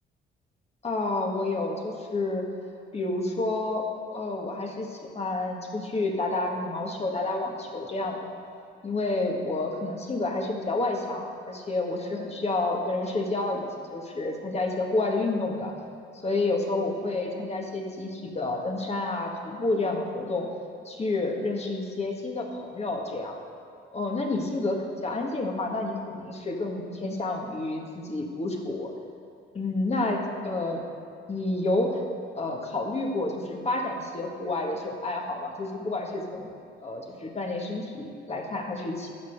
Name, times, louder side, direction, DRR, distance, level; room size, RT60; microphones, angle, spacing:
voice 1, 0.8-2.4 2.9-3.8 4.1-8.4 8.8-15.7 16.2-20.5 20.9-23.4 23.9-28.9 29.5-30.8 31.3-32.0 32.4-36.5 36.8-39.1, left 2 dB, 30° left, 1 dB, 1.8 m, -29 dB
12.0 x 7.1 x 6.6 m, 2.6 s
cardioid pair, 90°, 20 cm